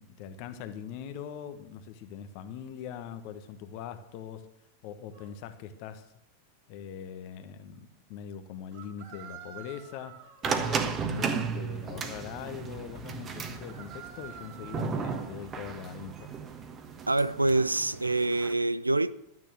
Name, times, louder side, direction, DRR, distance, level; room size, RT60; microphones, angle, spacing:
voice 1, 0.0-4.5 4.8-6.1 6.7-16.3, left 8 dB, 45° left, 1.2 m, -42 dB
sound 1, 5.1-5.3 8.7-10.4 13.4-15.2, right 9 dB, 45° right, 2.6 m, -48 dB
sound 2, 10.4-18.5, right 5 dB, 25° right, 1.3 m, -35 dB
voice 2, 17.1-19.1, right 2 dB, 85° right, 0.4 m, -26 dB
12.0 x 9.5 x 6.3 m
figure-of-eight pair, 90°, 0 cm